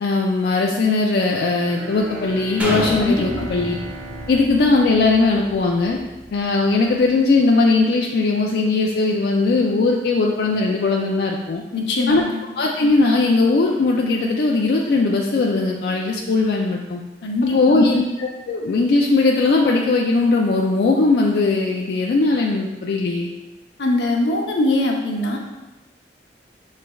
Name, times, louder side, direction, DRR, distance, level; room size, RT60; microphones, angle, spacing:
voice 1, 0.0-3.7 4.3-6.0 6.3-11.6 12.1-12.2 12.6-17.0 17.4-23.3, left 3 dB, 60° left, -1 dB, 0.3 m, -19 dB
Bowed string instrument, 1.6-5.9, right 1 dB, 60° right, 1.3 m, -36 dB
sound 1, 2.6-6.4 6.9-7.0, equal, 10° right, 0.7 m, -30 dB
voice 2, 3.0-3.5 11.7-12.4 17.2-18.0 23.8-25.4, left 2 dB, 75° left, 0 dB, 0.7 m, -22 dB
6.0 x 3.2 x 2.3 m, 1.1 s
head